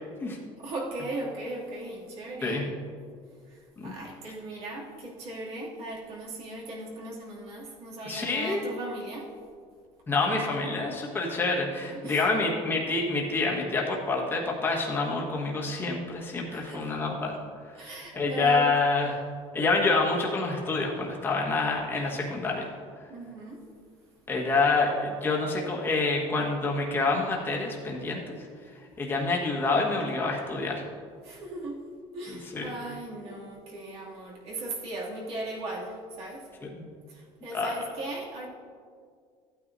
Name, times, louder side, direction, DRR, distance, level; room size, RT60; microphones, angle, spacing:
voice 1, 0.3-2.7 3.5-9.3 12.0-12.3 16.5-16.9 17.7-18.7 23.1-23.6 31.2-31.8 32.1-36.5 37.1-38.5, right 2 dB, 60° right, -4 dB, 2.7 m, -38 dB
voice 2, 8.1-8.7 10.1-17.3 17.8-19.2 19.5-22.7 24.3-28.4 29.0-30.8 32.3-32.7 36.6-36.9 37.5-37.8, left 3 dB, 20° left, -2 dB, 1.5 m, -27 dB
14.5 x 9.1 x 2.7 m, 2.1 s
cardioid pair, 145°, 11 cm